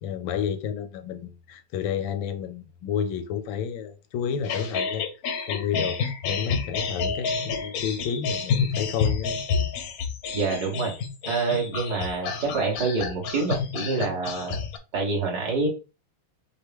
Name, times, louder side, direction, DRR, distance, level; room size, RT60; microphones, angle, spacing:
voice 1, 0.0-5.1 5.5-9.4, left 8 dB, 85° left, 1.4 m, -30 dB
sound 1, 4.4-14.8, left 5 dB, 65° left, 0.9 m, -29 dB
voice 2, 10.3-10.9 11.2-14.6 14.9-15.7, right 4 dB, 55° right, 2.0 m, -26 dB
6.4 x 2.2 x 3.4 m
omnidirectional pair, 2.1 m